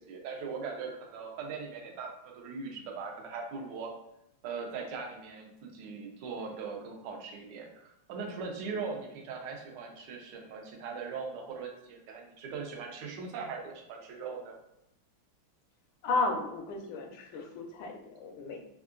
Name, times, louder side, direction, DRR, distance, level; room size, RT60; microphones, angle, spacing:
voice 1, 0.1-3.9 4.4-14.6, right 5 dB, 75° right, 1 dB, 1.1 m, -40 dB
voice 2, 16.0-18.7, left 3 dB, 75° left, 3 dB, 1.2 m, -33 dB
3.6 x 2.3 x 2.4 m, 0.84 s
omnidirectional pair, 2.3 m